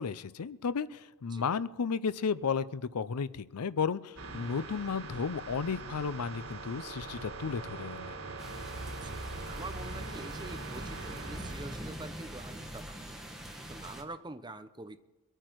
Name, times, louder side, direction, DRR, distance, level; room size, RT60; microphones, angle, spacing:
voice 1, 0.0-8.1, left 5 dB, 85° left, 17 dB, 0.5 m, -33 dB
sound 1, 4.2-11.9, right 3 dB, 80° right, 3.6 m, -42 dB
sound 2, 8.4-14.0, right 1 dB, ahead, 1.6 m, -44 dB
voice 2, 8.9-13.1 13.7-15.0, right 2 dB, 20° right, 9 dB, 0.8 m, -46 dB
24.0 x 9.0 x 4.6 m, 1.1 s
head